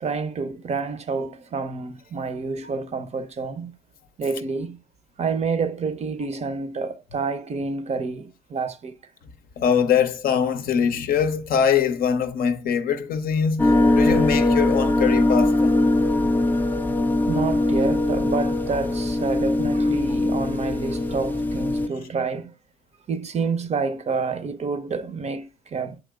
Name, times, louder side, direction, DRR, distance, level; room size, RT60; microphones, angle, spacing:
voice 1, 0.0-3.7 4.2-4.8 5.2-8.9 14.1-14.4 17.3-22.5 23.1-26.0, right 4 dB, 40° right, 0.5 m, -28 dB
voice 2, 9.6-15.7, left 7 dB, 55° left, 0.6 m, -22 dB
sound 1, 13.6-21.9, left 2 dB, 10° left, 0.4 m, -21 dB
7.5 x 2.9 x 2.3 m
hypercardioid pair, 50°, 18 cm